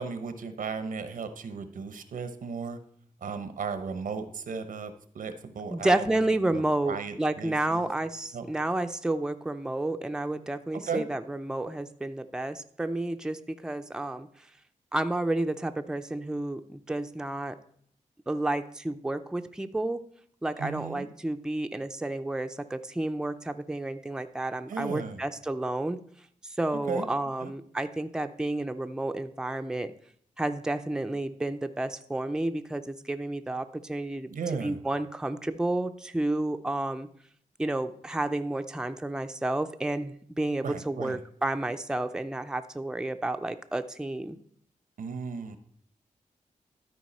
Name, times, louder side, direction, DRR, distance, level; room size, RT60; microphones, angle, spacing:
voice 1, 0.0-2.8 3.2-7.9 8.3-8.4 10.7-11.1 20.6-21.1 24.7-25.2 26.9-27.1 27.4-27.5 34.3-34.8 40.6-41.2 45.0-45.6, right 5 dB, 90° right, 10 dB, 0.8 m, -36 dB
voice 2, 5.7-14.5 14.9-17.6 18.3-20.0 20.4-26.0 26.4-29.9 30.4-34.3 34.6-37.1 37.6-44.4, right 2 dB, 5° right, 7 dB, 0.4 m, -31 dB
12.5 x 4.6 x 4.2 m, 0.62 s
wide cardioid pair, 95°, 14 cm